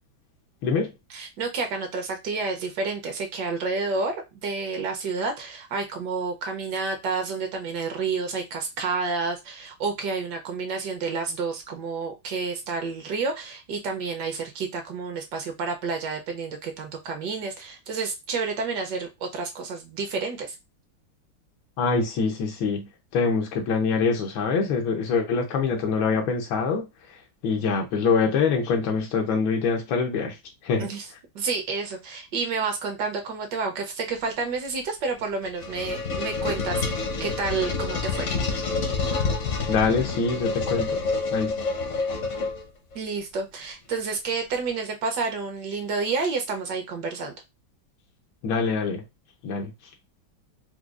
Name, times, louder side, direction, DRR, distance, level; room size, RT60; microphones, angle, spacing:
voice 1, 1.1-20.6 30.8-31.1 31.3-38.3 42.9-47.3, right 4 dB, 70° right, 1.2 m, -30 dB
voice 2, 21.8-26.9 27.4-30.4 30.6-30.9 39.7-41.0 41.3-41.6 48.4-49.0 49.4-49.7, left 5 dB, 85° left, 1.5 m, -24 dB
sound 1, 35.2-42.9, left 4 dB, 55° left, 0.8 m, -28 dB
4.7 x 2.2 x 2.3 m
omnidirectional pair, 2.1 m